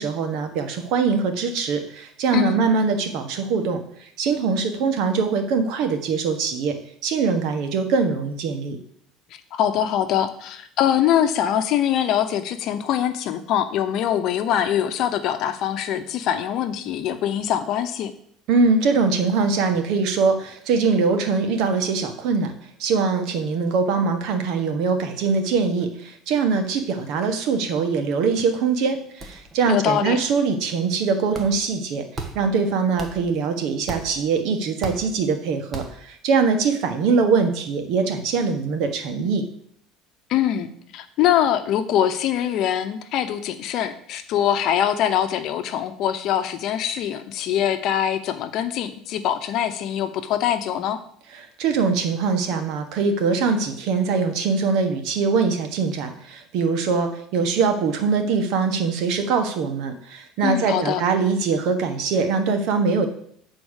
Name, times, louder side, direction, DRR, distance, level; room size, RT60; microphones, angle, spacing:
voice 1, 0.0-6.8 7.0-8.8 18.5-22.5 22.8-32.0 32.3-39.4 51.3-63.1, right 5 dB, 65° right, 6 dB, 1.4 m, -22 dB
voice 2, 9.5-18.1 29.7-30.2 40.3-51.0 60.4-61.0, left 10 dB, 55° left, 9 dB, 0.9 m, -23 dB
sound 1, 26.5-26.8 27.1-27.2 27.5-28.1 28.4-28.5 29.2-29.7 30.1-30.7 31.3-31.8 32.2-32.6 33.0-33.5 33.9-34.4 34.8-35.3 35.7-36.1, right 3 dB, 25° right, 1.4 m, -38 dB
8.5 x 4.4 x 6.5 m, 0.64 s
cardioid pair, 125°, 0 cm